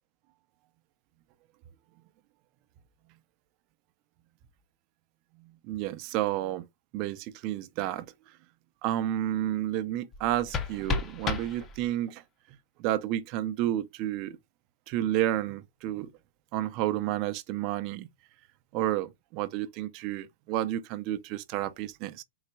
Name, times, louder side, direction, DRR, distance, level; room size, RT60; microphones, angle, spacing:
voice 1, 5.4-6.6 6.9-8.1 8.8-12.2 12.8-14.4 14.9-16.1 16.5-18.1 18.7-22.2, right 13 dB, 40° right, 0.5 m, -31 dB
sound 1, 10.1-12.1, left 5 dB, 20° left, 0.5 m, -34 dB
3.9 x 2.2 x 4.5 m
hypercardioid pair, 140°, 0 cm